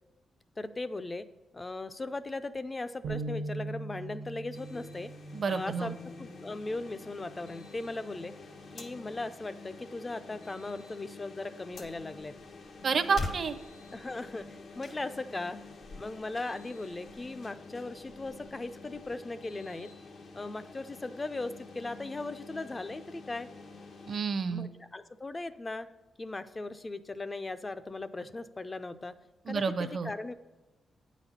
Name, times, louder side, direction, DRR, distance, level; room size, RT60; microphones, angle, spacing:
voice 1, 0.6-1.3 1.5-5.1 5.5-8.3 8.7-12.4 13.9-15.6 16.0-19.9 20.4-23.5 24.5-25.9 26.2-29.1 29.5-30.3, left 2 dB, 25° left, 12 dB, 0.4 m, -38 dB
sound 1, 3.0-9.3, right 2 dB, 90° right, 0.9 m, -43 dB
sound 2, 4.5-24.2, left 3 dB, 75° left, 1.0 m, -49 dB
voice 2, 5.3-6.0 12.8-13.6 24.1-24.7 29.5-30.1, right 5 dB, 50° right, 11 dB, 0.6 m, -30 dB
sound 3, 11.7-19.2, left 2 dB, 45° left, 0.9 m, -46 dB
8.8 x 4.1 x 7.1 m, 1.1 s
cardioid pair, 95°, 0 cm